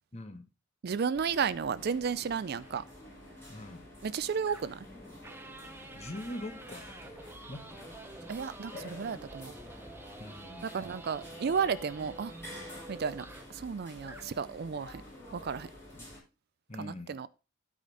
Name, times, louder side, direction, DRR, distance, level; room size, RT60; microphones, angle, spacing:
voice 1, 0.1-0.5 3.5-3.9 5.9-7.2 7.5-7.9 10.2-10.7 15.9-16.1 16.7-17.2, left 1 dB, 30° left, 1.0 m, -43 dB
voice 2, 0.8-2.8 4.0-4.9 8.3-9.5 10.6-12.3 12.9-15.0 15.3-15.7 16.8-17.3, right 6 dB, 50° right, 0.4 m, -33 dB
sound 1, 1.1-16.2, left 1 dB, 10° left, 5.5 m, -49 dB
sound 2, 2.6-2.8 4.5-4.9 5.2-13.6 14.0-14.3, right 2 dB, 10° right, 0.7 m, -49 dB
12.5 x 5.0 x 3.9 m
head